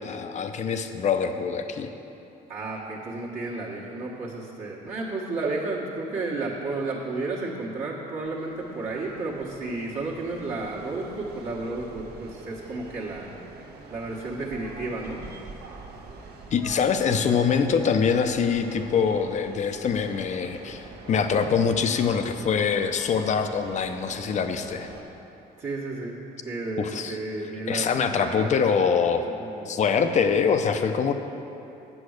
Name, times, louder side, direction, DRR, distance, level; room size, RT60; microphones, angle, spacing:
voice 1, 0.0-1.9 16.5-24.9 26.8-27.2 27.7-29.3 29.7-31.1, left 6 dB, 45° left, 7 dB, 0.7 m, -24 dB
voice 2, 2.5-13.3 13.9-15.2 17.3-17.4 21.4-21.5 25.6-26.2 26.4-28.6 29.4-29.6, right 3 dB, 50° right, -8 dB, 1.4 m, -32 dB
sound 1, 8.2-25.0, right 3 dB, 65° right, 1.3 m, -45 dB
8.6 x 7.0 x 6.5 m, 2.8 s
cardioid pair, 110°, 17 cm